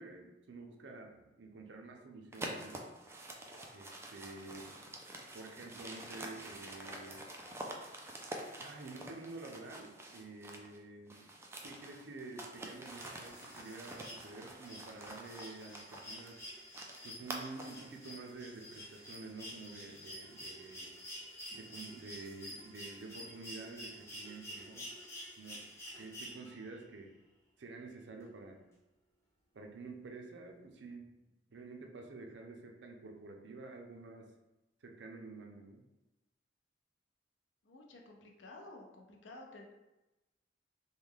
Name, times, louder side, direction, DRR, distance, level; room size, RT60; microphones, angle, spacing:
voice 1, 0.0-2.9 3.7-4.9 5.3-7.3 8.6-11.4 11.6-16.4 17.0-20.9 21.5-24.9 25.4-25.7 25.9-27.1 27.6-28.6 29.5-31.2 31.5-34.3 34.8-35.8, right 3 dB, 75° right, 2 dB, 0.5 m, -49 dB
sound 1, 2.3-10.8 11.1-17.9, right 1 dB, 15° right, 0.3 m, -47 dB
sound 2, 12.9-26.8 28.2-28.3, equal, 15° left, 0.8 m, -49 dB
voice 2, 37.6-39.7, left 2 dB, 90° left, 1 dB, 0.6 m, -52 dB
3.1 x 2.2 x 3.5 m, 1.0 s
head